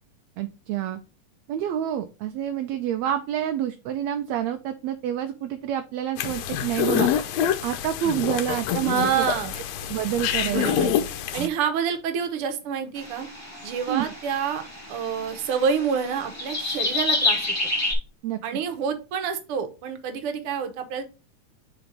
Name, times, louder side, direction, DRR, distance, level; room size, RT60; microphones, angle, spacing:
voice 1, 0.4-1.0 1.5-7.1 7.6-9.3 9.9-10.9 11.3-11.5 13.9-14.1 18.2-18.4, right 10 dB, 75° right, 7 dB, 1.7 m, -28 dB
sound 1, 6.2-11.5, left 9 dB, 75° left, 1.7 m, -26 dB
voice 2, 8.8-9.6 10.4-10.9 11.3-13.3 13.6-14.6 14.9-17.5 18.4-21.0, right 7 dB, 60° right, 7 dB, 1.8 m, -27 dB
sound 2, 13.0-17.9, left 2 dB, 10° left, 2.2 m, -29 dB
4.9 x 4.6 x 5.1 m, 0.31 s
omnidirectional pair, 3.4 m